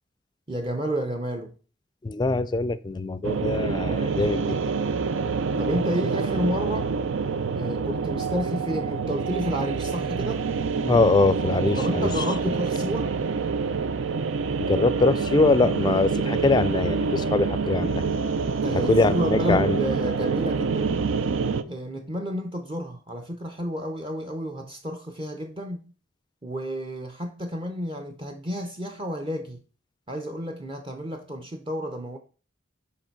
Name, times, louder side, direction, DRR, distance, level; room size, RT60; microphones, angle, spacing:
voice 1, 0.5-1.5 5.6-6.9 7.5-10.5 11.8-13.2 18.6-21.1 21.7-25.8 26.4-29.6 30.1-32.2, equal, 25° right, 0.6 m, -30 dB
voice 2, 2.0-4.7 10.9-12.2 14.6-18.0 18.7-19.8, left 3 dB, 20° left, 0.3 m, -23 dB
sound 1, 3.2-21.6, right 5 dB, 85° right, 0.5 m, -26 dB
6.6 x 5.2 x 4.5 m
head